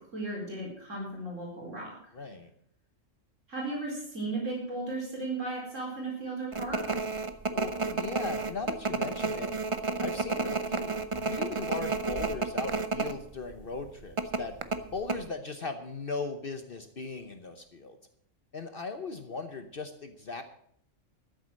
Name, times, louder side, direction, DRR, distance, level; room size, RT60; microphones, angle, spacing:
voice 1, 0.1-1.9 3.5-6.8, right 2 dB, 75° right, -3 dB, 4.8 m, -35 dB
voice 2, 2.1-2.5 7.5-9.5 10.0-14.5 14.9-18.0 18.5-20.4, left 3 dB, 50° left, 8 dB, 1.1 m, -38 dB
sound 1, 6.5-13.1 13.4-13.6 14.2-15.2, right 3 dB, 30° right, 0.7 m, -31 dB
13.0 x 7.8 x 7.4 m, 0.66 s
omnidirectional pair, 1.3 m